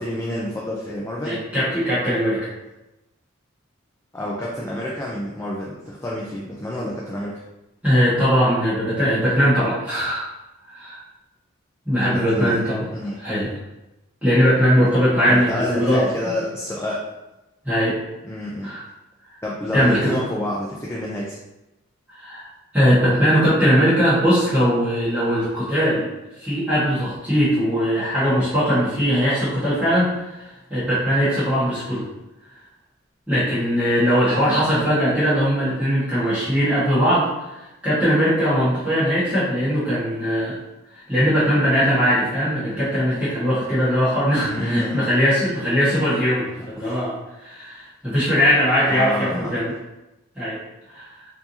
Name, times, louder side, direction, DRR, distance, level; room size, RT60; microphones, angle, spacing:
voice 1, 0.0-1.3 4.1-7.4 12.1-12.6 12.9-13.2 15.3-17.0 18.2-18.7 19.4-21.4 34.3-34.5 44.4-45.0 46.8-47.0 48.9-49.6, left 1 dB, 10° left, -5 dB, 0.4 m, -28 dB
voice 2, 1.2-2.5 7.8-10.2 10.7-11.0 11.8-12.8 13.2-13.5 14.2-15.5 15.7-16.3 17.6-17.9 18.6-18.8 19.7-20.2 22.1-22.5 22.7-26.1 26.4-30.4 30.7-32.0 33.3-37.3 37.8-40.5 40.9-49.7 50.4-50.6 50.9-51.1, equal, 5° right, -13 dB, 1.3 m, -20 dB
4.6 x 2.7 x 2.7 m, 0.96 s
head